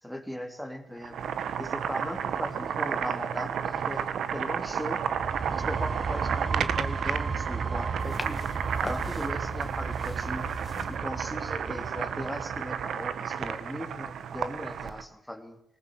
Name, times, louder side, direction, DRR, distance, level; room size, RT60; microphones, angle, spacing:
voice 1, 0.0-1.2 1.6-5.0 5.5-8.4 8.8-10.5 10.9-15.6, equal, ahead, 6 dB, 2.9 m, -38 dB
Boiling, 1.0-15.0, right 8 dB, 65° right, 1.3 m, -32 dB
sound 1, 5.1-12.7, right 5 dB, 30° right, 0.9 m, -35 dB
sound 2, 8.0-11.0, left 3 dB, 25° left, 1.8 m, -41 dB
19.5 x 19.0 x 7.9 m, 0.75 s
cardioid pair, 90°, 0 cm